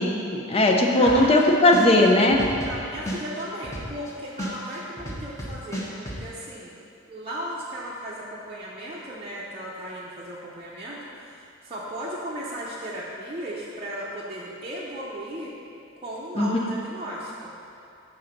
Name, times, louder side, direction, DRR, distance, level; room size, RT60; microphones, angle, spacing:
voice 1, 0.0-2.4 16.4-16.6, left 1 dB, 30° left, 1 dB, 0.6 m, -18 dB
voice 2, 1.0-1.8 2.6-6.7 7.1-11.0 11.3-15.5 16.0-17.5, right 1 dB, 30° right, -7 dB, 0.7 m, -36 dB
sound 1, 1.1-1.4 1.7-4.1 4.4-6.2, equal, 15° left, 1.1 m, -33 dB
7.0 x 3.9 x 5.8 m, 2.7 s
head